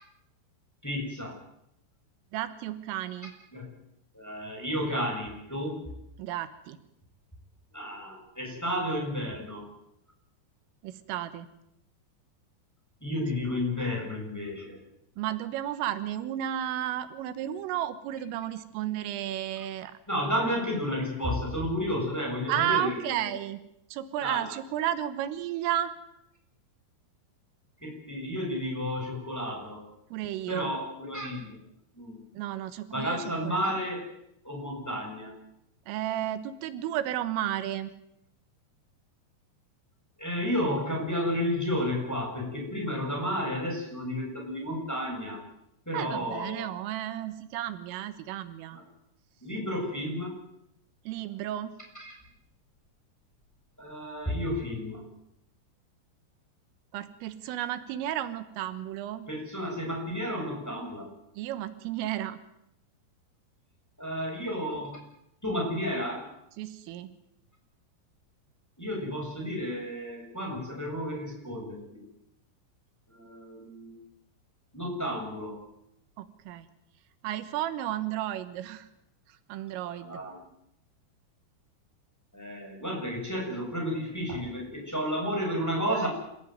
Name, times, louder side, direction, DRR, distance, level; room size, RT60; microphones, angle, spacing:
voice 1, 0.8-1.4 3.5-3.7 4.1-5.8 7.7-9.7 13.0-14.8 20.1-23.0 24.2-24.5 27.8-29.9 30.5-31.6 31.9-32.2 32.9-34.1 34.4-35.3 40.2-45.4 45.9-46.7 49.4-50.4 52.0-52.1 53.8-55.0 59.3-61.1 64.0-65.0 65.4-66.3 68.8-72.0 73.1-73.9 74.7-75.6 80.0-80.4 82.3-86.1, equal, 5° left, -1 dB, 7.2 m, -32 dB
voice 2, 2.3-3.3 6.2-6.8 10.8-11.5 15.2-20.0 22.5-23.6 23.9-25.9 30.1-30.7 32.4-33.7 35.9-37.9 45.9-48.8 51.1-51.8 56.9-59.3 61.4-62.4 66.6-67.1 76.2-76.7 77.2-78.9 79.5-80.2 85.9-86.1, right 12 dB, 85° right, 11 dB, 3.9 m, -33 dB
28.0 x 16.0 x 9.4 m, 0.80 s
omnidirectional pair, 5.7 m